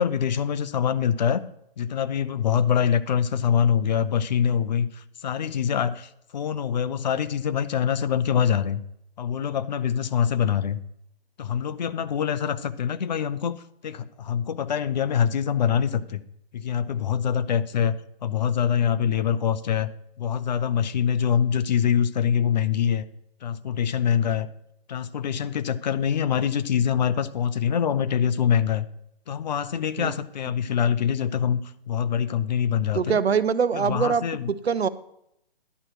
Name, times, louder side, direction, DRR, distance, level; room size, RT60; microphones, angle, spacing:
voice 1, 0.0-1.4 1.8-8.8 9.2-10.8 11.4-13.6 13.8-16.2 16.5-19.9 20.2-23.0 23.4-24.5 24.9-28.8 29.3-31.6 31.9-33.2 33.7-34.5, left 8 dB, 45° left, 13 dB, 0.7 m, -24 dB
voice 2, 32.9-34.9, right 6 dB, 85° right, 14 dB, 0.8 m, -24 dB
11.0 x 7.9 x 4.6 m, 0.77 s
hypercardioid pair, 145°, 31 cm